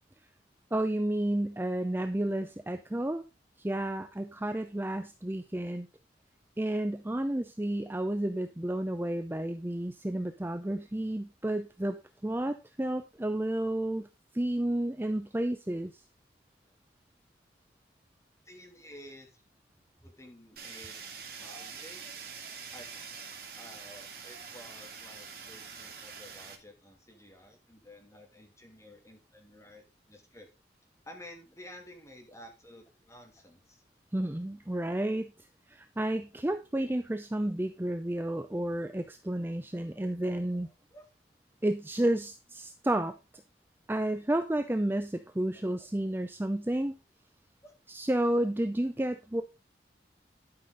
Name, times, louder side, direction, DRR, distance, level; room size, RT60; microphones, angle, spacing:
voice 1, 0.7-3.2 3.6-5.9 6.6-14.1 14.3-15.9 34.1-35.3 35.7-40.7 41.6-43.1 43.9-46.9 47.9-49.4, right 1 dB, 10° right, 8 dB, 0.5 m, -31 dB
voice 2, 18.4-19.3 20.0-21.0 21.4-22.0 22.7-23.2 23.5-30.5 31.0-33.8 40.5-41.1 45.5-46.2 47.6-47.7, left 1 dB, 15° left, 3 dB, 2.4 m, -52 dB
Fire, 20.6-26.6, right 6 dB, 55° right, 2.0 m, -45 dB
11.5 x 5.7 x 3.9 m, 0.28 s
head